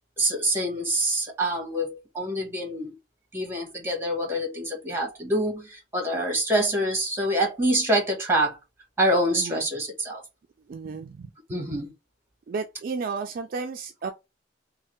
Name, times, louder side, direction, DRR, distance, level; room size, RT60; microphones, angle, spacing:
voice 1, 0.2-3.0 3.3-8.6 9.0-10.2 11.5-11.9, right 1 dB, 15° right, 1.1 m, -26 dB
voice 2, 9.3-9.6 10.7-11.3 12.5-14.1, right 4 dB, 50° right, 0.3 m, -33 dB
3.2 x 2.1 x 2.9 m
head